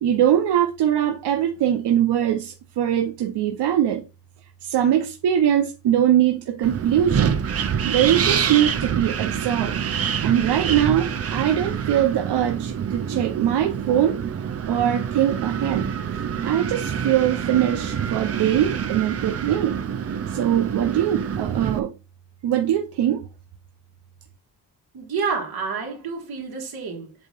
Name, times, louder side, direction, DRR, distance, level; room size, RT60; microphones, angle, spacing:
voice 1, 0.0-4.0 4.6-7.4 7.8-9.8 10.2-14.2 14.7-15.9 16.4-19.8 20.3-21.9 22.4-23.3, right 10 dB, 90° right, 0.8 m, -22 dB
Wind, 6.6-21.8, right 7 dB, 40° right, 0.6 m, -26 dB
voice 2, 24.9-27.1, right 5 dB, 65° right, 2.3 m, -29 dB
7.8 x 2.8 x 5.3 m
wide cardioid pair, 155°, 40 cm